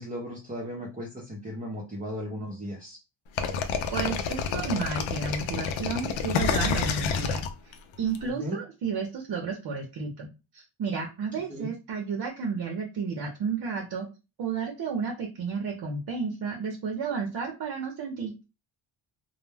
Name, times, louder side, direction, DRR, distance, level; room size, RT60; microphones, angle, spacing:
voice 1, 0.0-3.0 8.2-8.6 11.3-11.7, equal, 15° right, -2 dB, 0.6 m, -36 dB
sound 1, 3.4-8.2, left 6 dB, 70° left, 0.6 m, -28 dB
voice 2, 3.9-14.1 14.4-18.4, right 5 dB, 50° right, 2 dB, 0.7 m, -32 dB
2.2 x 2.1 x 3.3 m, 0.28 s
cardioid pair, 95°, 49 cm